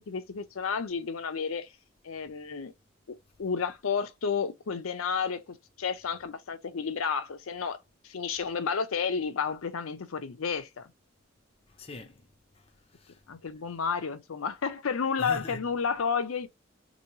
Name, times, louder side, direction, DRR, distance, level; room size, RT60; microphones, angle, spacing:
voice 1, 0.1-1.7 2.0-2.7 3.1-7.8 8.0-10.9 13.3-16.5, left 6 dB, 90° left, 0.6 m, -31 dB
voice 2, 11.7-13.3 15.2-15.7, left 3 dB, 30° left, 0.6 m, -44 dB
3.0 x 2.7 x 2.7 m
head